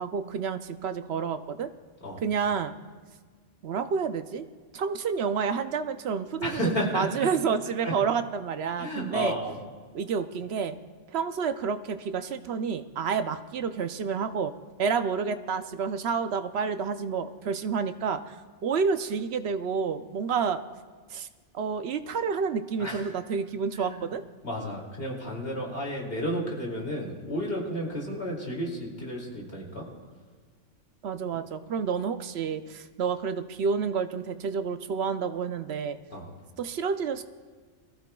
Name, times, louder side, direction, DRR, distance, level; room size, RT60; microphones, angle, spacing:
voice 1, 0.0-1.7 2.2-2.7 3.6-4.5 4.7-6.6 6.9-9.4 9.9-10.8 11.1-14.5 14.8-18.4 18.6-20.6 21.1-21.3 21.5-24.2 31.0-36.0 36.6-37.2, right 6 dB, 60° right, 10 dB, 0.8 m, -29 dB
voice 2, 6.4-7.3 7.8-7.9 8.8-9.6 22.8-23.0 23.7-24.0 24.4-29.9 36.1-36.3, equal, 45° left, -2 dB, 2.8 m, -32 dB
22.5 x 15.0 x 2.3 m, 1.5 s
omnidirectional pair, 1.4 m